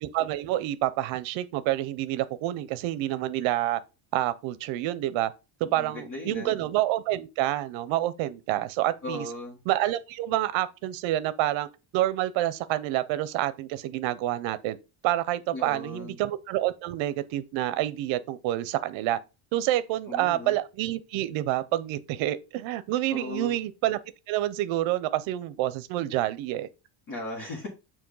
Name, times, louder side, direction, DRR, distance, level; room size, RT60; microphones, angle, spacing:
voice 1, 0.0-3.8 4.1-5.3 5.7-9.2 9.7-11.7 11.9-14.8 15.0-19.2 19.5-24.0 24.3-26.7, right 14 dB, 70° right, 0.7 m, -28 dB
voice 2, 5.6-6.6 9.0-9.6 15.5-16.2 20.1-20.6 23.1-23.6 27.1-27.7, left 2 dB, 40° left, 1.6 m, -37 dB
7.0 x 2.9 x 5.4 m
cardioid pair, 180°, 48 cm